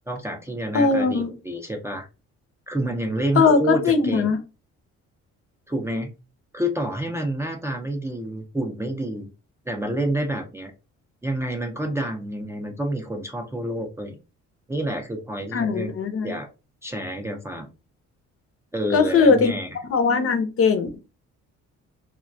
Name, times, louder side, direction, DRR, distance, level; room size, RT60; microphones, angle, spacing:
voice 1, 0.1-2.1 2.7-4.4 5.7-6.1 6.5-9.3 9.7-10.7 11.2-14.2 14.7-15.9 16.2-16.5 16.8-17.7 18.7-19.8, right 1 dB, 10° right, 1 dB, 0.4 m, -28 dB
voice 2, 0.7-1.3 3.4-4.4 15.5-16.3 18.9-19.5 19.9-21.0, left 5 dB, 50° left, 8 dB, 0.6 m, -20 dB
2.2 x 2.2 x 2.5 m, 0.30 s
cardioid pair, 90°, 30 cm